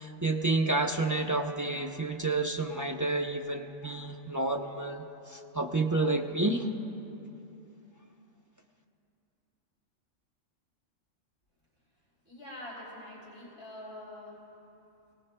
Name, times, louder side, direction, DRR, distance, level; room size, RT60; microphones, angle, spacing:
voice 1, 0.0-6.7, right 2 dB, 25° right, 1 dB, 0.4 m, -30 dB
voice 2, 12.2-14.4, left 1 dB, 60° left, -7 dB, 3.3 m, -45 dB
23.0 x 18.0 x 2.2 m, 2.9 s
omnidirectional pair, 1.3 m